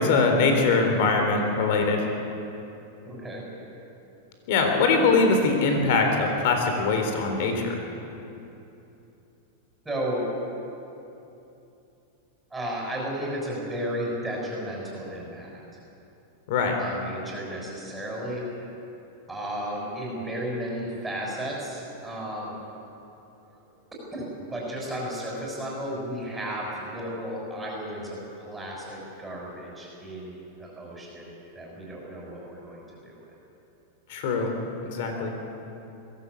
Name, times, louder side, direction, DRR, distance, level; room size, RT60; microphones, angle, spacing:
voice 1, 0.0-2.1 4.5-7.8 16.5-16.8 34.1-34.5 34.8-35.3, left 3 dB, 60° left, 4 dB, 3.8 m, -22 dB
voice 2, 3.0-3.4 9.8-10.3 12.5-15.5 16.8-18.4 19.3-22.5 23.5-23.6 24.1-33.2, equal, 5° right, -5 dB, 6.2 m, -34 dB
22.5 x 17.0 x 8.4 m, 2.9 s
supercardioid pair, 140°, 0 cm